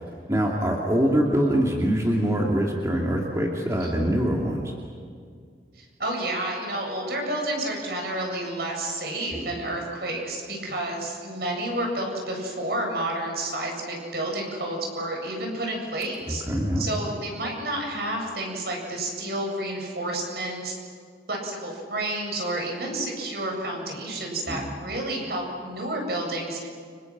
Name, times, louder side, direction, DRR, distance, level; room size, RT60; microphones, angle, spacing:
voice 1, 0.0-4.7 9.3-9.4 16.5-16.9 24.5-24.7, equal, 15° right, -2 dB, 2.6 m, -24 dB
voice 2, 3.8-4.1 5.7-16.4 16.8-20.8 21.3-26.7, right 1 dB, 60° right, 1 dB, 8.0 m, -30 dB
30.0 x 28.0 x 6.1 m, 2.1 s
head